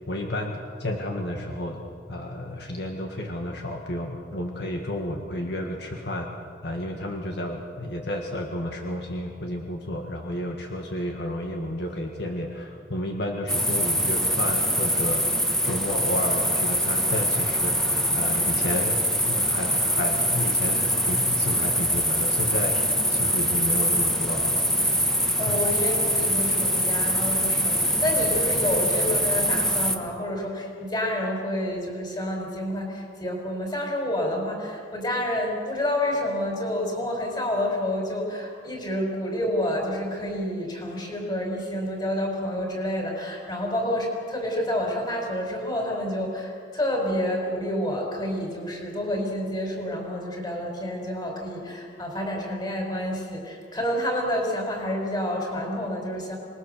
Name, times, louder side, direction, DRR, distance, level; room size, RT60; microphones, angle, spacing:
voice 1, 0.1-6.3 6.6-15.2 15.6-22.8 23.1-24.6 25.4-25.6, left 1 dB, 60° left, 2 dB, 1.8 m, -31 dB
sound 1, 13.5-30.0, equal, 5° left, 1.4 m, -24 dB
voice 2, 25.4-56.4, left 1 dB, 25° left, 1 dB, 4.8 m, -29 dB
25.5 x 21.0 x 6.8 m, 2.3 s
head